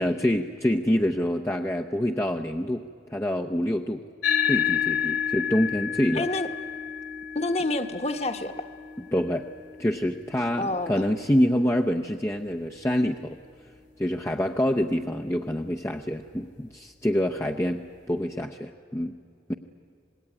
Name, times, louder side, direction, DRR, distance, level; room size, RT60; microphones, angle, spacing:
voice 1, 0.0-4.0 4.5-6.2 9.1-9.5 9.8-13.4 14.0-17.8 18.1-19.1 19.5-19.6, equal, 15° left, 2 dB, 0.7 m, -26 dB
sound 1, 4.2-13.0, left 8 dB, 65° left, 2.7 m, -31 dB
voice 2, 6.1-6.5 7.3-8.5 10.6-11.0, left 2 dB, 35° left, 7 dB, 1.3 m, -28 dB
26.5 x 20.0 x 9.8 m, 2.4 s
head